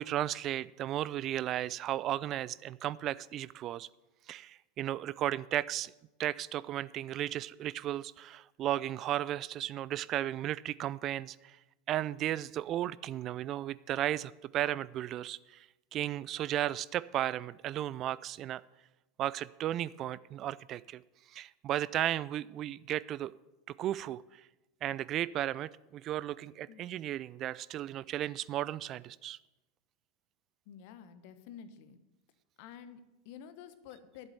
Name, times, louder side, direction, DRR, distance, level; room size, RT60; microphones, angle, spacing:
voice 1, 0.0-3.9 4.3-5.9 6.2-11.6 11.9-15.7 15.9-18.6 19.2-21.0 21.3-23.3 23.8-24.2 24.8-29.4, right 12 dB, 35° right, 19 dB, 0.3 m, -34 dB
voice 2, 30.7-32.0 32.6-34.3, left 8 dB, 50° left, 12 dB, 1.0 m, -50 dB
11.0 x 8.0 x 6.9 m, 0.99 s
figure-of-eight pair, 85°, 0 cm